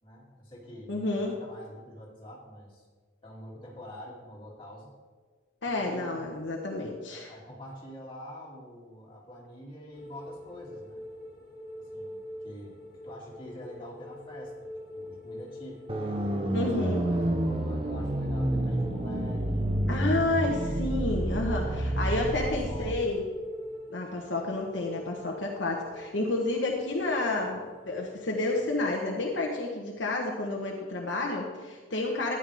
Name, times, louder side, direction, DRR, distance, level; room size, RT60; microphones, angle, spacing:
voice 1, 0.0-2.8 3.2-4.9 5.6-6.2 7.3-11.0 11.8-12.7 13.0-16.2 16.6-19.7 20.6-20.7 21.6-22.1 22.4-23.2, equal, 25° left, -5 dB, 2.8 m, -46 dB
voice 2, 0.9-1.4 5.6-7.3 16.5-17.0 19.9-23.2 23.9-32.3, left 2 dB, 65° left, -1 dB, 1.2 m, -30 dB
sound 1, 9.9-28.9, left 1 dB, 45° left, 2.4 m, -45 dB
sound 2, 15.9-22.9, right 1 dB, 30° right, 0.8 m, -29 dB
13.0 x 10.0 x 3.5 m, 1.4 s
head